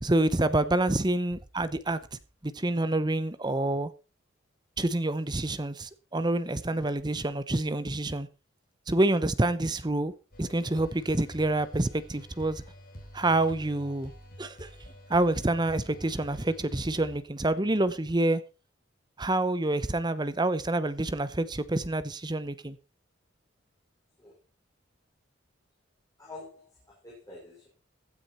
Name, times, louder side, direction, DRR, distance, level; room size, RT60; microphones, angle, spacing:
voice 1, 0.0-3.9 4.8-8.3 8.9-10.1 10.4-12.6 13.1-14.1 14.4-14.7 15.1-18.4 19.2-22.8, right 2 dB, 20° right, 0.8 m, -27 dB
sound 1, 10.3-17.2, equal, 45° left, 4.7 m, -48 dB
voice 2, 26.2-27.7, left 2 dB, 20° left, 4.9 m, -47 dB
15.5 x 9.8 x 4.3 m
head